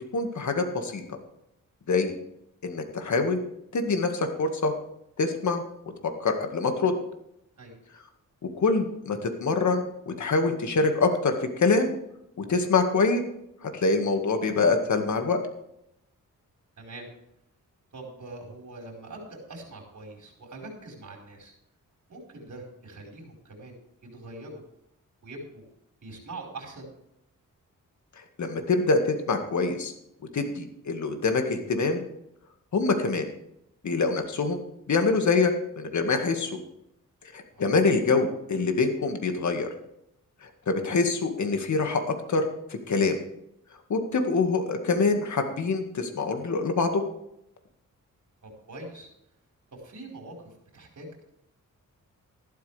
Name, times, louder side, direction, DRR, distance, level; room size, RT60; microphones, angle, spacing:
voice 1, 0.1-1.0 1.9-2.1 2.6-3.4 3.7-4.7 5.2-5.6 6.0-6.9 8.6-11.9 12.4-13.2 13.6-15.4 28.2-29.9 30.3-32.0 32.7-33.3 33.8-34.6 34.9-36.6 37.3-39.7 40.4-43.2 43.9-47.0, left 3 dB, 60° left, 5 dB, 1.9 m, -25 dB
voice 2, 16.8-17.1 17.9-21.5 22.1-24.6 25.2-25.6 26.0-26.9 33.1-33.2 37.5-37.7 48.4-49.1 49.7-51.2, right 2 dB, 60° right, 0 dB, 4.8 m, -43 dB
14.0 x 12.5 x 3.4 m, 0.80 s
cardioid pair, 90°, 33 cm